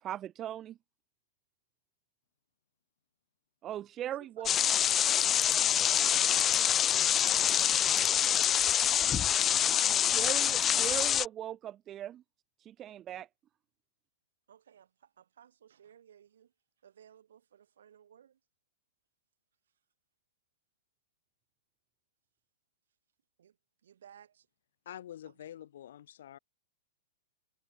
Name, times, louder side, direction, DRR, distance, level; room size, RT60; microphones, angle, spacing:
voice 1, 0.0-0.8 3.6-4.5 10.0-12.2 12.6-13.3, right 11 dB, 30° right, 0.6 m, -39 dB
voice 2, 4.1-5.5 5.9-7.9 8.6-9.4 14.5-16.5 16.8-18.4 23.4-23.6 23.8-24.5 25.2-25.3, right 9 dB, 75° right, 7.8 m, -58 dB
sound 1, 4.5-11.3, left 10 dB, 25° left, 0.6 m, -26 dB
voice 3, 24.9-26.4, left 11 dB, 70° left, 2.0 m, -47 dB
hypercardioid pair, 115°, 0 cm